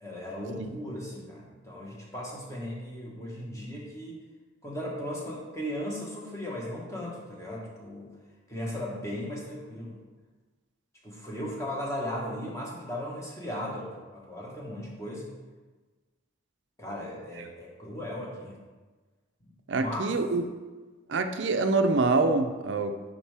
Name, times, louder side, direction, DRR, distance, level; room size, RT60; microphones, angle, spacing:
voice 1, 0.0-4.2 4.6-8.1 8.5-10.0 11.0-15.3 16.8-18.6 19.4-20.1, left 1 dB, 15° left, -3 dB, 1.2 m, -37 dB
voice 2, 19.7-20.4 21.1-23.1, right 3 dB, 65° right, 7 dB, 0.5 m, -25 dB
7.2 x 5.4 x 3.4 m, 1.3 s
head